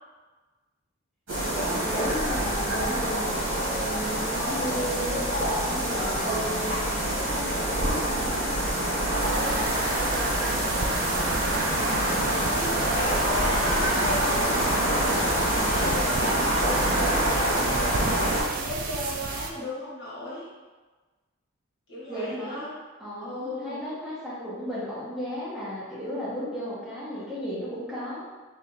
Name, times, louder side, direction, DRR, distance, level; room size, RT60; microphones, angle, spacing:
sound 1, 1.3-18.4, right 1 dB, 60° right, 1.4 m, -26 dB
voice 1, 1.5-3.3 3.7-8.7 22.1-22.6 23.0-28.2, equal, ahead, -12 dB, 1.1 m, -34 dB
sound 2, 9.2-19.5, right 4 dB, 40° right, 0.3 m, -34 dB
voice 2, 9.7-11.6 12.1-14.8 15.5-16.8 17.2-17.9 18.3-20.5 21.9-22.7 23.2-23.8, left 1 dB, 60° left, -7 dB, 1.3 m, -37 dB
3.3 x 2.7 x 4.0 m, 1.3 s
head